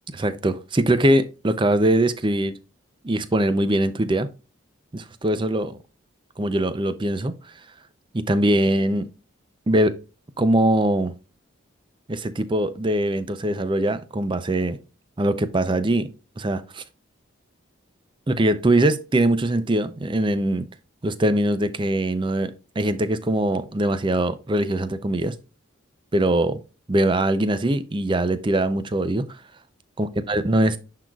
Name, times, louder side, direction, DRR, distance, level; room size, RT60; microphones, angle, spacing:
voice 1, 0.1-2.5 3.0-4.3 4.9-5.7 6.4-7.3 8.1-9.1 9.7-10.0 10.4-11.1 12.1-14.8 15.2-16.8 18.3-20.7 21.0-25.3 26.1-26.6 26.9-29.3 30.0-30.8, right 1 dB, 25° right, 0.5 m, -22 dB
10.5 x 3.9 x 2.3 m
head